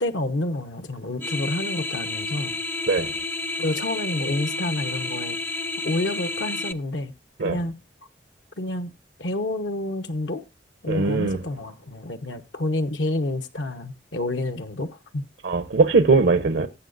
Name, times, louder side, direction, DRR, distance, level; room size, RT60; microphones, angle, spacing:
voice 1, 0.0-2.6 3.6-5.4 5.8-7.1 7.4-7.8 8.6-8.9 9.2-10.4 10.8-15.3, left 1 dB, 80° left, 0.9 m, -28 dB
sound 1, 1.2-6.7, left 2 dB, 10° left, 0.5 m, -30 dB
voice 2, 10.9-11.4 15.4-16.7, right 4 dB, 75° right, 0.8 m, -20 dB
18.5 x 7.8 x 2.5 m
head